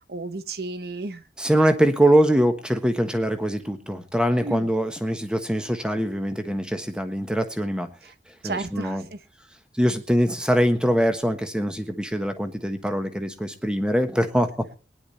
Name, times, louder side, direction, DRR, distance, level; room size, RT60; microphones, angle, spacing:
voice 1, 0.1-1.2 4.4-4.7 8.0-8.1 8.4-9.2, right 3 dB, 60° right, 0.9 m, -33 dB
voice 2, 1.4-7.9 8.4-9.0 9.7-14.8, equal, 5° right, 1.2 m, -23 dB
19.5 x 10.5 x 4.2 m
head